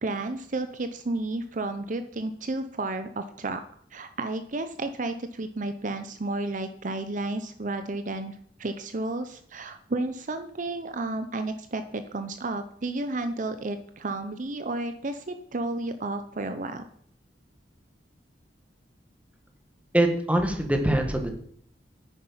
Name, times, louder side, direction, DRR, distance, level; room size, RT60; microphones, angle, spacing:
voice 1, 0.0-3.6 3.9-16.8, right 2 dB, 45° right, 9 dB, 0.8 m, -32 dB
voice 2, 19.9-21.3, right 1 dB, 10° right, 4 dB, 1.7 m, -23 dB
9.9 x 9.3 x 5.6 m, 0.62 s
head